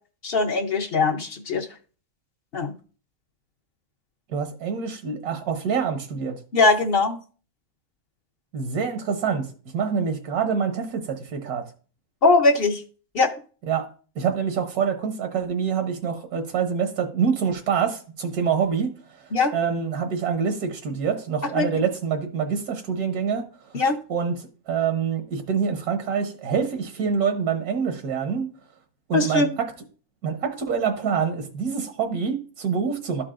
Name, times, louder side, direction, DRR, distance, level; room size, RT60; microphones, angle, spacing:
voice 1, 0.2-1.7 2.5-2.7 6.5-7.2 12.2-12.8 13.1-13.3 19.3-19.5 21.5-21.7 23.7-24.0 29.1-29.5, left 3 dB, 50° left, 4 dB, 0.8 m, -20 dB
voice 2, 4.3-6.4 8.5-11.6 13.6-13.9 14.1-23.8 24.1-28.5 29.1-29.7 30.2-33.2, right 6 dB, 80° right, 6 dB, 1.4 m, -26 dB
12.5 x 4.7 x 2.5 m, 0.39 s
omnidirectional pair, 1.6 m